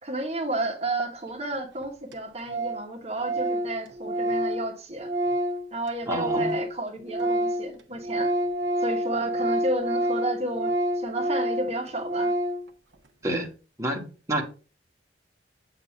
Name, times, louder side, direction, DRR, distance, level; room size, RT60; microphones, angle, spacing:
voice 1, 0.0-5.1 5.7-8.3 8.8-12.3, right 2 dB, 35° right, 1.2 m, -32 dB
Organ, 1.5-1.6 1.8-1.9 2.1-2.2 2.5-2.9 3.1-6.7 7.0-12.7, right 1 dB, 80° right, 0.9 m, -28 dB
voice 2, 6.1-6.5 13.2-13.5 13.8-14.4, right 1 dB, 15° right, 1.2 m, -28 dB
7.8 x 2.7 x 5.6 m
head